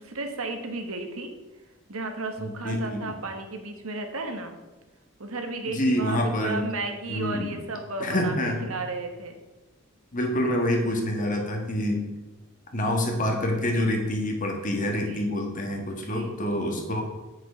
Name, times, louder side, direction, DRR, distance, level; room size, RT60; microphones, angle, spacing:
voice 1, 0.0-1.3 1.9-4.5 5.2-8.4 8.6-9.4 14.8-15.4 16.0-16.4, right 3 dB, 75° right, 5 dB, 1.3 m, -34 dB
voice 2, 2.4-3.2 5.6-6.7 7.1-7.5 8.0-8.7 10.1-12.1 12.7-17.0, left 1 dB, 40° left, 2 dB, 1.6 m, -27 dB
7.7 x 6.3 x 5.6 m, 1.1 s
head